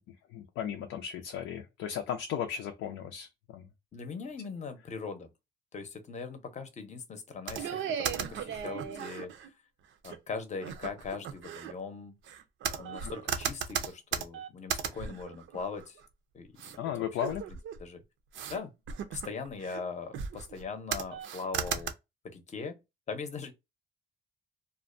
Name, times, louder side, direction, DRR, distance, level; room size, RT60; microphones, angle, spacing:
voice 1, 0.0-3.6 16.8-17.4, left 9 dB, 90° left, 0.5 m, -36 dB
voice 2, 3.9-5.3 5.7-9.3 10.0-12.2 12.8-16.0 16.3-16.5 16.8-17.1 17.8-18.0 18.5-18.7 19.1-21.9 22.2-22.8 23.1-23.5, left 5 dB, 35° left, 0.6 m, -40 dB
sound 1, 7.5-9.5 10.0-10.2 10.6-11.7 12.3-16.1 16.6-16.8 17.2-17.8 18.3-18.6 18.9-19.8 20.1-20.6 20.9-21.9, right 8 dB, 75° right, 0.5 m, -36 dB
2.5 x 2.1 x 2.4 m
cardioid pair, 90°, 20 cm